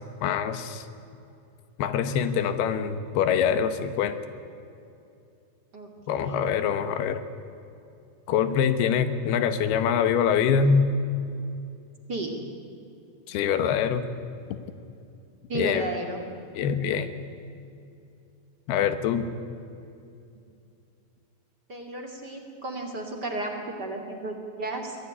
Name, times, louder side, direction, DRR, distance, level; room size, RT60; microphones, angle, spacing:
voice 1, 0.2-0.9 1.8-4.2 6.1-7.2 8.3-10.9 13.3-14.0 15.5-15.9 16.6-17.1 18.7-19.3, left 7 dB, 90° left, 10 dB, 3.2 m, -24 dB
voice 2, 5.7-6.5 12.1-12.3 15.5-16.2 21.7-25.0, right 2 dB, 30° right, 2 dB, 2.6 m, -33 dB
24.0 x 18.0 x 9.9 m, 2.6 s
omnidirectional pair, 4.4 m